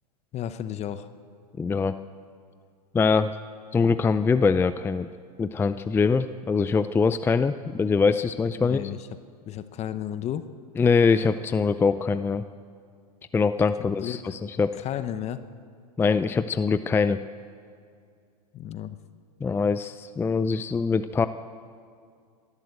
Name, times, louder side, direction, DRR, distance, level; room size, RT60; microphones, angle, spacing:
voice 1, 0.3-1.1 8.6-9.1 9.5-10.5 14.0-14.4 14.7-15.4 18.5-19.0, left 10 dB, 35° left, 12 dB, 0.9 m, -33 dB
voice 2, 1.6-1.9 2.9-3.3 3.7-5.1 5.4-8.8 10.8-12.4 13.3-14.7 16.0-17.2 19.4-21.3, left 5 dB, 10° left, 12 dB, 0.4 m, -23 dB
28.5 x 12.5 x 7.8 m, 2.2 s
hypercardioid pair, 110°, 20 cm